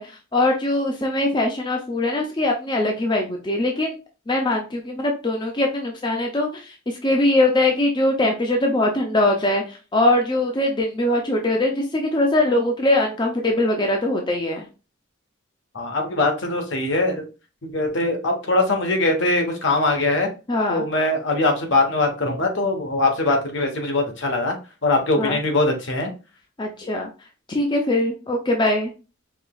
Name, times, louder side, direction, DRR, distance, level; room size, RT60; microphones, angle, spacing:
voice 1, 0.0-3.9 4.3-14.7 20.5-20.8 25.2-25.4 26.6-27.1 27.5-28.9, left 1 dB, 20° left, 2 dB, 0.5 m, -22 dB
voice 2, 15.7-17.2 17.6-20.3 20.7-24.6 24.8-26.1, left 2 dB, 70° left, 3 dB, 1.0 m, -22 dB
4.8 x 2.9 x 2.3 m, 0.32 s
head